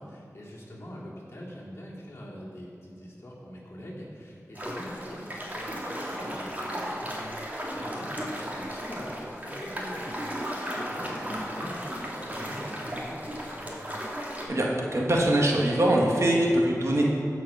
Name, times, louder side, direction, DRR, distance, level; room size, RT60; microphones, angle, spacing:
voice 1, 0.0-13.8, equal, 45° left, -6 dB, 2.7 m, -43 dB
sound 1, 4.5-14.4, equal, 25° right, 2.1 m, -35 dB
voice 2, 14.5-17.1, right 1 dB, 55° right, -2 dB, 1.7 m, -23 dB
14.5 x 5.1 x 5.6 m, 2.5 s
wide cardioid pair, 55°, 6 cm